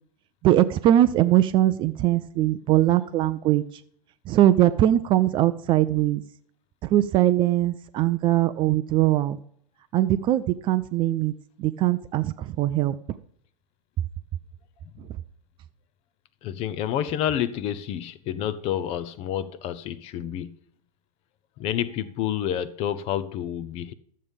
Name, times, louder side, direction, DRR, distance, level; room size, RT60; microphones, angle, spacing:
voice 1, 0.4-3.6 4.3-6.2 6.8-9.4 9.9-11.3 11.6-13.0 15.0-15.1, right 13 dB, 25° right, 0.4 m, -21 dB
voice 2, 16.4-20.6 21.6-23.9, left 10 dB, 30° left, 0.6 m, -29 dB
12.0 x 7.5 x 5.1 m
figure-of-eight pair, 95°, 20 cm